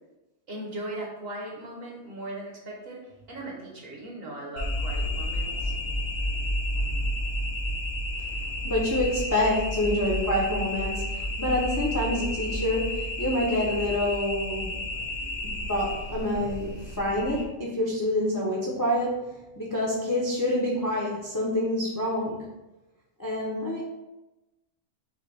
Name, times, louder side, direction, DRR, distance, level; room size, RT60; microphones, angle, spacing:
voice 1, 0.5-5.7, right 1 dB, 50° right, -3 dB, 1.0 m, -38 dB
sound 1, 4.6-17.4, left 1 dB, 80° left, 1.2 m, -31 dB
voice 2, 8.6-14.8 15.6-22.4 23.2-23.8, left 1 dB, 25° left, -5 dB, 0.4 m, -27 dB
5.5 x 2.1 x 3.2 m, 1.0 s
omnidirectional pair, 1.4 m